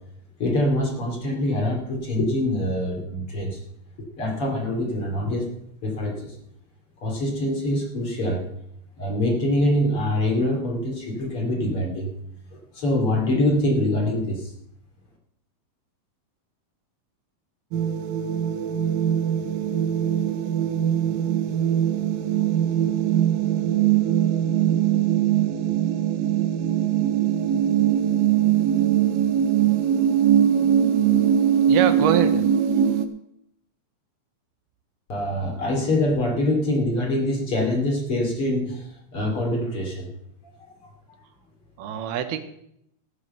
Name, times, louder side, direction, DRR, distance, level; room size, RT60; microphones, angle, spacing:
voice 1, 0.4-3.6 4.2-5.6 5.8-6.3 7.0-8.5 9.0-12.1 12.5-14.5 35.1-40.1 40.7-40.8, left 1 dB, 40° left, 0 dB, 3.3 m, -24 dB
sound 1, 17.7-33.0, right 9 dB, 75° right, 2.5 m, -21 dB
voice 2, 31.7-32.4 41.8-42.4, right 9 dB, 90° right, 9 dB, 3.0 m, -24 dB
15.5 x 7.8 x 6.7 m, 0.75 s
omnidirectional pair, 4.4 m